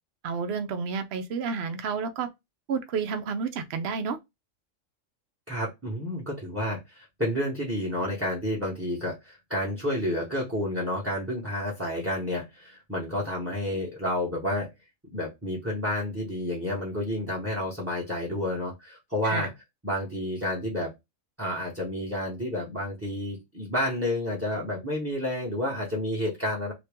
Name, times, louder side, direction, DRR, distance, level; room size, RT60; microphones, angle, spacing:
voice 1, 0.2-2.3 2.7-4.2 19.2-19.5, right 5 dB, 65° right, 0.8 m, -30 dB
voice 2, 5.5-14.7 15.1-19.5 19.8-20.9 21.4-26.7, left 1 dB, 10° right, 0.9 m, -30 dB
2.8 x 2.8 x 3.4 m
omnidirectional pair, 1.3 m